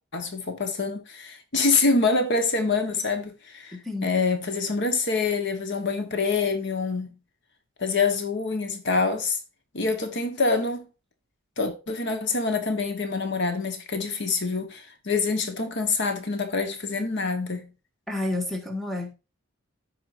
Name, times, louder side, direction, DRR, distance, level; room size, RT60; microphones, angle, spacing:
voice 1, 0.1-3.8 4.0-7.1 7.8-9.4 9.7-10.8 11.6-17.7, left 4 dB, 60° left, 1.2 m, -26 dB
voice 2, 3.7-4.1 18.1-19.1, left 2 dB, ahead, 1.7 m, -30 dB
14.0 x 4.8 x 2.6 m
head